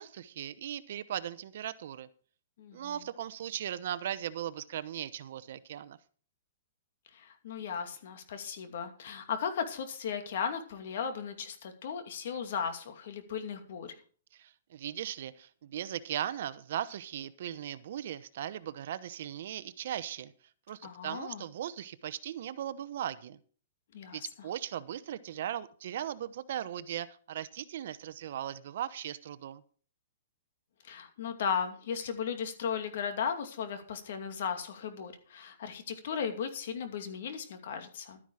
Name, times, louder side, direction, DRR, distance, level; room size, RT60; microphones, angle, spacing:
voice 1, 0.0-2.1 2.7-6.0 14.3-20.3 20.7-23.4 24.1-29.6, right 10 dB, 55° right, 15 dB, 0.9 m, -38 dB
voice 2, 2.6-3.0 7.1-14.0 20.8-21.5 23.9-24.2 30.8-38.2, left 7 dB, 60° left, 7 dB, 2.5 m, -36 dB
12.0 x 10.0 x 4.9 m, 0.43 s
hypercardioid pair, 160°, 0 cm